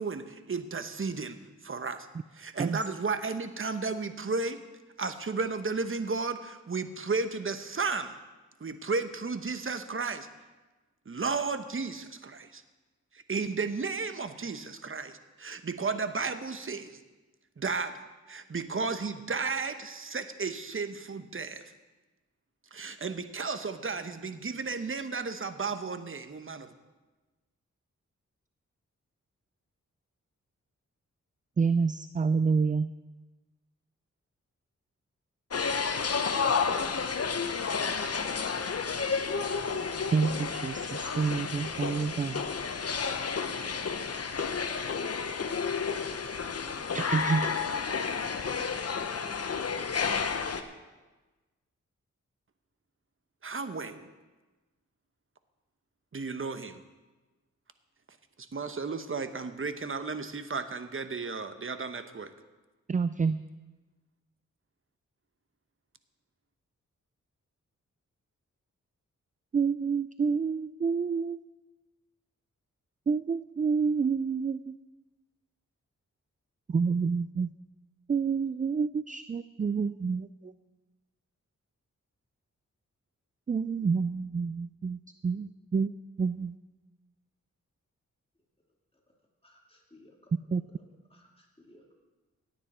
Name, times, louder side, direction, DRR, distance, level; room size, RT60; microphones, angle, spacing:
voice 1, 0.0-1.4 1.6-2.1 2.3-4.6 5.0-8.1 8.6-10.3 11.1-12.6 13.1-17.0 17.6-21.6 22.7-26.7 53.4-54.1 56.1-56.8 58.5-62.3, right 4 dB, 40° right, 10 dB, 1.1 m, -33 dB
voice 2, 31.6-32.9 40.1-42.4 46.9-47.5 62.9-63.4 69.5-71.4 73.1-74.7 76.7-77.5 78.1-80.5 83.5-85.9 86.2-86.5 90.5-90.6, right 5 dB, 25° right, 14 dB, 0.4 m, -28 dB
sound 1, 35.5-50.6, left 5 dB, 50° left, 1.0 m, -31 dB
voice 3, 89.4-90.3 90.8-91.9, left 1 dB, 20° left, -1 dB, 2.7 m, -59 dB
17.0 x 9.2 x 4.3 m, 1.2 s
cardioid pair, 50°, 31 cm